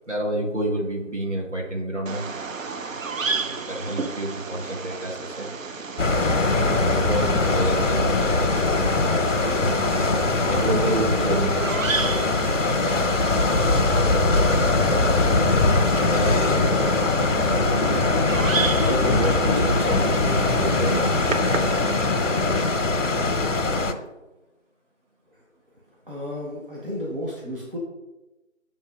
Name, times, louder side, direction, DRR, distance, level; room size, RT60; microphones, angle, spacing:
voice 1, 0.1-2.3 3.2-5.5 6.9-12.1 14.1-15.2 15.8-17.6 18.8-21.7, right 1 dB, 65° right, -1 dB, 1.3 m, -30 dB
Bird vocalization bird call bird song, 2.1-22.1, right 4 dB, 85° right, 0.6 m, -34 dB
sound 1, 6.0-23.9, left 3 dB, 70° left, 0.6 m, -21 dB
voice 2, 26.1-27.8, equal, 45° right, -5 dB, 1.0 m, -32 dB
7.3 x 2.9 x 2.3 m, 1.0 s
figure-of-eight pair, 175°, 39 cm